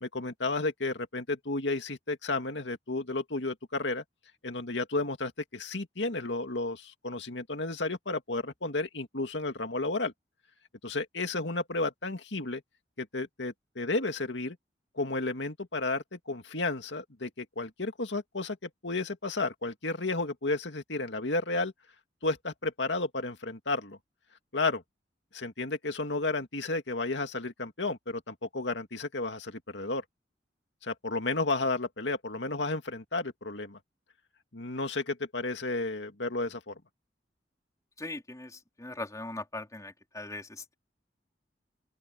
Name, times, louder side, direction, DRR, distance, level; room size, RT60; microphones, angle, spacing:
voice 1, 0.0-4.0 4.4-10.1 10.8-12.6 13.0-14.6 14.9-21.7 22.2-24.0 24.5-24.8 25.3-30.0 30.8-33.8 34.5-36.7, left 2 dB, 90° left, 2.3 m, -32 dB
voice 2, 38.0-40.8, left 2 dB, 20° left, 3.5 m, -40 dB
open air
head